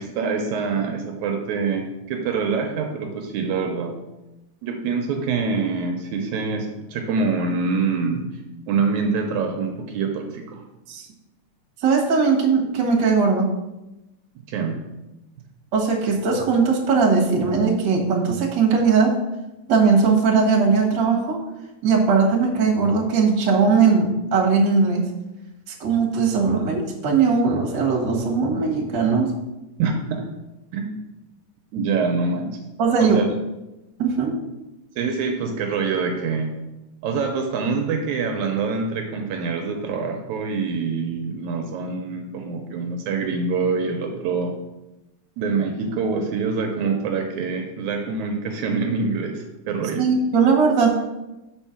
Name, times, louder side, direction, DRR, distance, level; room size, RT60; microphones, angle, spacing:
voice 1, 0.0-4.0 4.6-8.2 8.7-10.6 14.5-14.8 29.8-30.3 30.7-30.9 31.7-32.6 33.0-33.3 35.0-36.5 37.0-44.5 45.4-50.1, right 4 dB, 80° right, 3 dB, 2.0 m, -25 dB
voice 2, 11.8-13.5 15.7-19.1 19.7-21.4 21.8-25.0 25.8-29.3 32.8-33.2 34.0-34.3 50.0-50.9, right 5 dB, 45° right, -1 dB, 1.7 m, -19 dB
6.9 x 4.5 x 5.8 m, 0.99 s
omnidirectional pair, 3.5 m